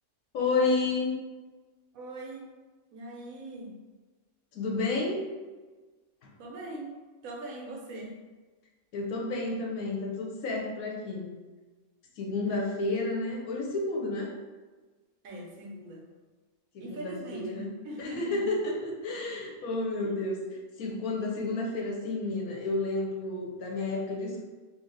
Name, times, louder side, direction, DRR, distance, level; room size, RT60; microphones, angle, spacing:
voice 1, 0.3-1.1 4.5-5.3 8.9-11.3 12.2-14.3 16.7-17.7 18.0-24.4, left 3 dB, 75° left, -2 dB, 1.2 m, -31 dB
voice 2, 1.9-2.5 2.9-3.7 6.4-7.0 7.2-8.1 12.5-12.6 15.2-16.0 16.8-18.4 20.0-20.2, right 2 dB, 75° right, -1 dB, 1.2 m, -41 dB
2.8 x 2.8 x 3.8 m, 1.3 s
omnidirectional pair, 1.5 m